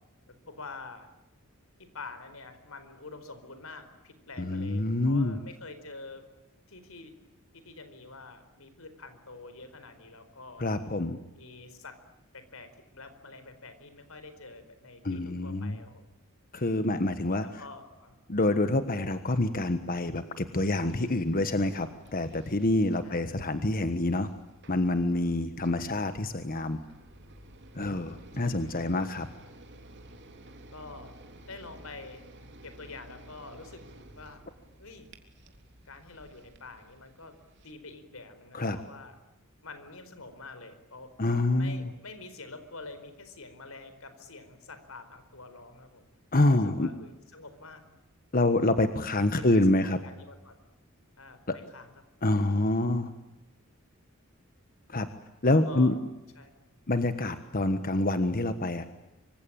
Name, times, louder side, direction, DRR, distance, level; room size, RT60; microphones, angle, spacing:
voice 1, 0.3-1.1 1.8-6.2 6.7-7.1 7.5-10.7 11.3-12.0 12.3-16.0 17.6-18.2 23.0-23.2 27.9-28.7 30.7-31.1 31.4-32.2 32.6-33.8 34.1-34.4 34.8-35.1 35.9-37.3 37.6-39.1 39.6-41.1 41.6-46.0 46.5-47.8 48.6-48.7 49.3-50.6 51.2-51.9 55.5-55.9 56.4-56.5 57.7-57.8, left 3 dB, 80° left, 10 dB, 4.5 m, -47 dB
voice 2, 4.4-5.4 10.6-11.2 15.0-15.8 16.5-17.6 18.3-24.3 24.7-26.8 27.7-29.3 38.5-38.8 41.2-41.9 46.3-46.9 48.3-50.0 52.2-53.1 54.9-55.1 55.4-55.9 56.9-58.9, left 2 dB, 45° left, 10 dB, 1.4 m, -27 dB
sound 1, 20.7-37.7, right 1 dB, 55° right, 3.4 m, -53 dB
26.0 x 25.0 x 8.8 m, 0.96 s
head